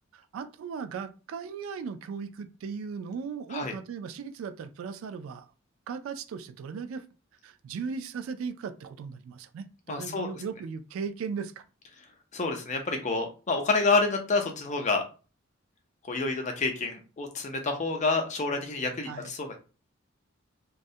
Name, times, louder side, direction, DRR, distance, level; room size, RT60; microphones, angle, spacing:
voice 1, 0.1-5.5 5.9-7.0 7.4-11.6 19.1-19.3, right 6 dB, 80° right, 0.3 m, -37 dB
voice 2, 9.9-10.3 12.3-15.0 16.0-19.6, left 3 dB, 35° left, 0.5 m, -28 dB
2.2 x 2.1 x 2.6 m
head